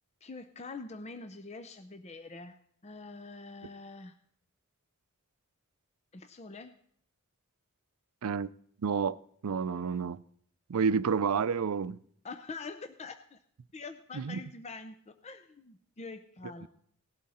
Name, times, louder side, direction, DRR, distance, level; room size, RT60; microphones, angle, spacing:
voice 1, 0.2-2.6 2.8-4.2 6.1-6.7 12.2-13.4 13.7-16.7, left 3 dB, 30° left, 0.6 m, -45 dB
voice 2, 8.8-9.2 9.4-10.2 10.7-12.0 14.1-14.4, right 6 dB, 85° right, 0.5 m, -29 dB
18.0 x 11.5 x 4.2 m
head